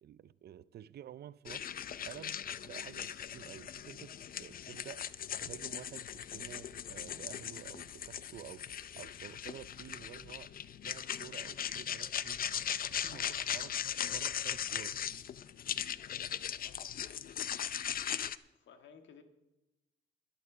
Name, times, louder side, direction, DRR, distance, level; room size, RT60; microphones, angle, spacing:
voice 1, 0.0-1.7 2.0-5.1 5.4-10.5 10.8-12.4 12.9-13.7 14.1-15.0, right 10 dB, 55° right, 0.5 m, -51 dB
sound 1, 1.5-18.4, left 9 dB, 45° left, 0.5 m, -39 dB
voice 2, 18.5-19.2, left 6 dB, 70° left, 1.7 m, -58 dB
13.0 x 11.5 x 5.1 m
cardioid pair, 90°, 20 cm